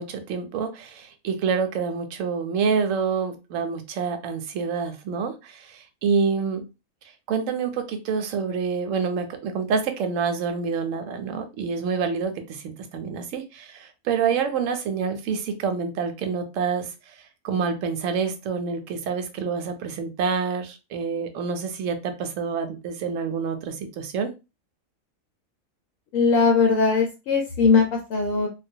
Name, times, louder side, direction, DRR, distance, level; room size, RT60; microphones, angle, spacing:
voice 1, 0.0-6.6 7.3-16.9 17.4-24.3, right 5 dB, 75° right, 0.9 m, -27 dB
voice 2, 26.1-28.5, left 4 dB, 75° left, 1.0 m, -20 dB
2.3 x 2.2 x 2.6 m
omnidirectional pair, 1.5 m